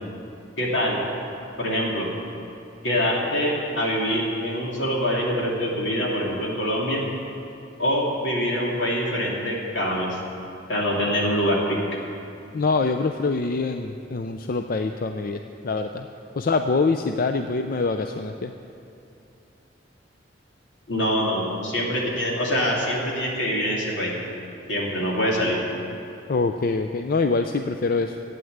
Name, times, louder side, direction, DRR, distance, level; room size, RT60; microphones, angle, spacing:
voice 1, 0.6-1.0 1.6-2.1 2.8-7.0 7.8-10.2 10.7-11.8 20.9-24.1 24.7-25.6, equal, 80° left, -3 dB, 2.9 m, -24 dB
voice 2, 12.5-16.1 16.4-18.5 26.3-28.2, left 3 dB, 50° left, 6 dB, 0.5 m, -24 dB
13.0 x 9.4 x 8.0 m, 2.7 s
head